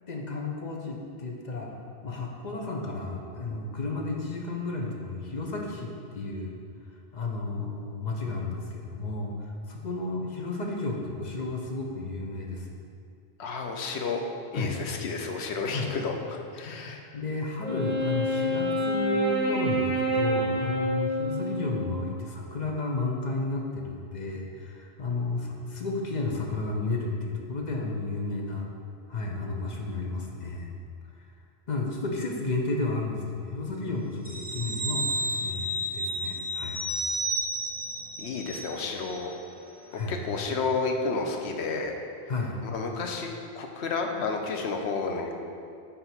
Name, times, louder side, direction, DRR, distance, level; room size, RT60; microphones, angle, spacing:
voice 1, 0.1-1.8 2.0-6.6 7.1-12.7 14.5-14.7 15.7-15.9 16.6-28.7 29.1-30.7 31.7-36.8 39.9-40.1 42.3-42.6, left 3 dB, 45° left, 0 dB, 0.8 m, -32 dB
voice 2, 13.4-14.2 14.5-17.0 38.2-39.3 40.1-41.9 42.6-43.3 43.5-45.3, left 4 dB, 85° left, 3 dB, 1.0 m, -31 dB
Wind instrument woodwind instrument, 17.6-22.2, equal, 40° right, 1.3 m, -27 dB
sound 1, 34.2-39.4 39.7-39.8, right 1 dB, 15° right, 0.4 m, -32 dB
5.7 x 4.1 x 5.9 m, 2.4 s
omnidirectional pair, 1.1 m